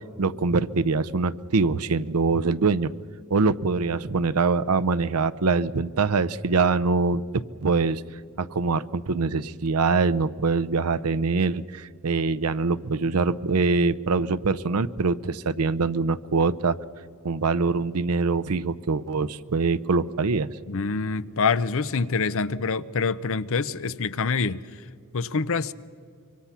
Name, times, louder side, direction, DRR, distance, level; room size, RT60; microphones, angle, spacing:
voice 1, 0.2-2.9 3.3-7.2 7.6-8.0 8.4-16.8 17.2-20.5, right 4 dB, 90° right, 0.7 m, -24 dB
voice 2, 20.7-24.6 25.1-25.7, left 4 dB, 65° left, 0.7 m, -26 dB
25.5 x 24.0 x 5.8 m
head